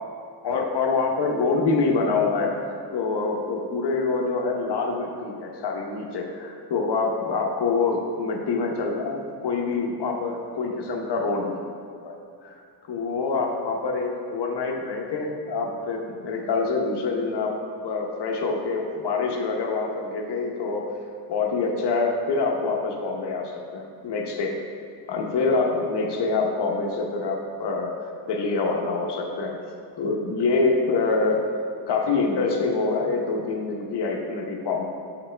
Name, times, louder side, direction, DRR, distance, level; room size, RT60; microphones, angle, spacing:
voice 1, 0.4-2.5 2.9-11.6 11.9-12.1 12.4-12.6 12.9-17.6 17.8-20.9 21.3-24.6 25.1-29.6 30.0-31.5 31.9-34.8, left 4 dB, 75° left, 1 dB, 1.0 m, -26 dB
7.6 x 6.0 x 3.3 m, 2.4 s
wide cardioid pair, 150°, 41 cm